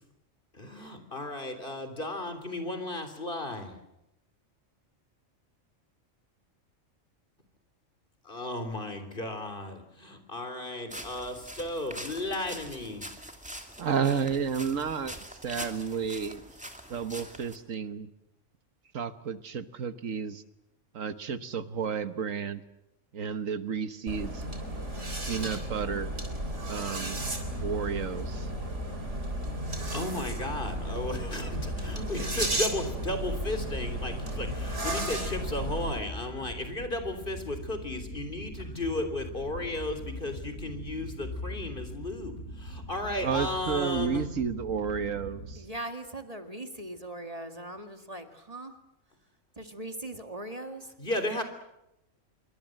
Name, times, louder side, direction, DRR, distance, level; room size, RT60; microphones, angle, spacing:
voice 1, 0.6-3.7 8.3-13.1 29.9-31.6 31.9-44.3 51.0-51.4, left 1 dB, 40° left, 8 dB, 3.7 m, -34 dB
sound 1, 10.9-17.6, equal, 5° right, 2.5 m, -44 dB
voice 2, 13.8-16.4 16.9-18.1 18.9-20.4 20.9-22.6 23.1-24.4 25.3-26.2 26.6-27.2 27.6-28.5 43.2-45.6, right 6 dB, 75° right, 11 dB, 1.6 m, -32 dB
sound 2, 24.1-36.0, right 1 dB, 60° right, 3.9 m, -34 dB
sound 3, 27.1-45.6, left 1 dB, 60° left, 5.6 m, -42 dB
voice 3, 45.6-48.7 49.6-50.9, right 1 dB, 30° right, 6 dB, 2.1 m, -40 dB
27.0 x 23.0 x 7.8 m, 0.87 s
omnidirectional pair, 1.4 m